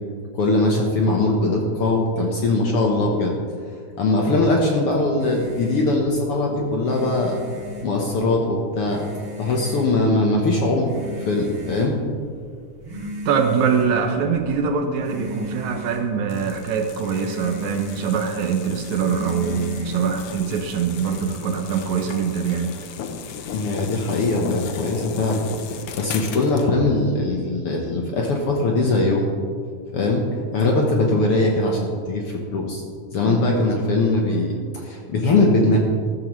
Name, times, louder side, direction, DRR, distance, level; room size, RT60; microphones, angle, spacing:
voice 1, 0.3-3.3 4.0-7.4 7.8-9.0 9.4-12.0 23.5-29.3 29.9-30.2 30.5-32.8 33.1-35.8, left 2 dB, 60° left, 0 dB, 1.6 m, -21 dB
sound 1, 5.2-21.2, equal, 40° right, 3.2 m, -37 dB
voice 2, 13.3-22.7 33.2-33.4, right 6 dB, 70° right, 5 dB, 2.1 m, -23 dB
sound 2, 16.3-26.7, left 6 dB, 85° left, 1.2 m, -35 dB
14.0 x 13.5 x 3.2 m, 2.1 s
omnidirectional pair, 3.7 m